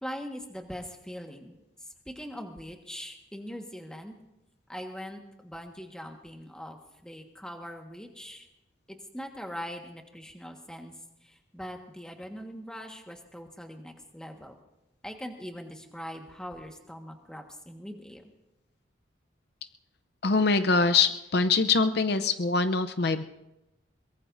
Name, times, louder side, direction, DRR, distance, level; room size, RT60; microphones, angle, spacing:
voice 1, 0.0-4.2 4.7-8.5 8.9-10.9 11.2-14.6 15.0-18.2, equal, 5° left, 3 dB, 1.5 m, -42 dB
voice 2, 20.2-23.2, left 4 dB, 55° left, 11 dB, 0.7 m, -24 dB
23.0 x 21.5 x 2.7 m, 0.92 s
head